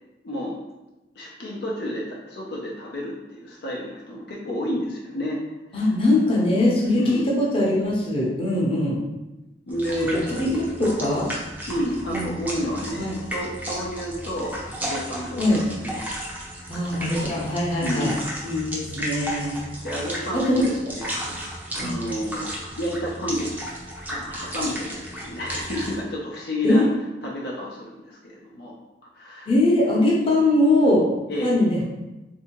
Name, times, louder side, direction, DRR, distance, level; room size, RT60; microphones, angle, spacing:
voice 1, 0.2-0.6 1.2-5.4 5.7-5.9 6.9-7.3 9.7-10.3 11.7-15.5 15.7-16.0 17.8-18.2 19.8-23.5 24.1-26.8 27.2-28.8 29.1-29.5 31.3-31.6, equal, 65° left, -4 dB, 0.5 m, -30 dB
voice 2, 5.7-9.0 9.9-10.5 10.8-11.3 12.1-12.3 13.0-13.2 15.4-15.6 16.7-18.1 18.4-19.6 20.3-20.6 21.8-21.9 26.6-26.9 29.5-31.0 31.4-31.8, left 1 dB, 30° left, -4 dB, 0.8 m, -21 dB
sound 1, 9.7-26.0, equal, 10° right, 0.5 m, -34 dB
3.4 x 2.7 x 3.0 m, 1.0 s
head